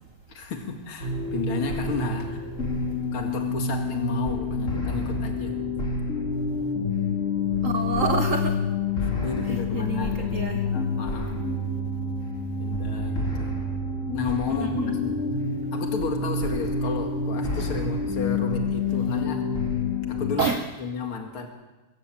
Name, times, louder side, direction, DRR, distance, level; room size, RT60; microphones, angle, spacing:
voice 1, 0.3-2.4 3.1-5.6 9.0-11.5 12.6-13.6 14.1-15.2 15.7-19.5 20.1-21.5, left 4 dB, 75° left, 3 dB, 2.9 m, -33 dB
sound 1, 1.0-20.3, left 4 dB, 35° left, 3.5 m, -28 dB
voice 2, 7.6-8.6 9.5-10.7 14.5-15.0 20.4-20.7, right 5 dB, 45° right, 7 dB, 1.1 m, -28 dB
23.5 x 15.0 x 7.6 m, 1.1 s
omnidirectional pair, 2.4 m